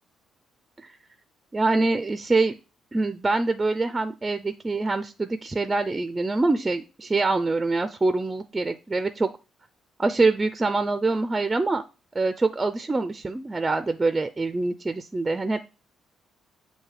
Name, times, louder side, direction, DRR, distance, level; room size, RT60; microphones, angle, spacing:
voice 1, 1.5-2.5 2.9-9.3 10.0-11.8 12.1-15.6, right 3 dB, 20° right, 10 dB, 0.4 m, -25 dB
7.3 x 2.7 x 4.7 m, 0.31 s
cardioid pair, 90°, 0 cm